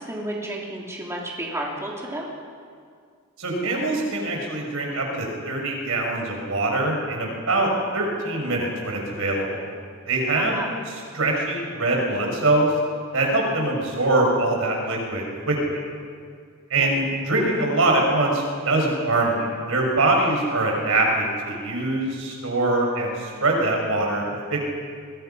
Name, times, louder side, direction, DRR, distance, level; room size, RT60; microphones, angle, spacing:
voice 1, 0.0-2.3 10.3-10.7 16.8-17.0, right 1 dB, 15° right, -3 dB, 3.3 m, -32 dB
voice 2, 3.4-9.7 10.1-10.6 11.1-12.7 13.1-15.8 16.7-24.6, right 2 dB, 70° right, 0 dB, 6.1 m, -23 dB
27.5 x 22.5 x 5.8 m, 2.1 s
head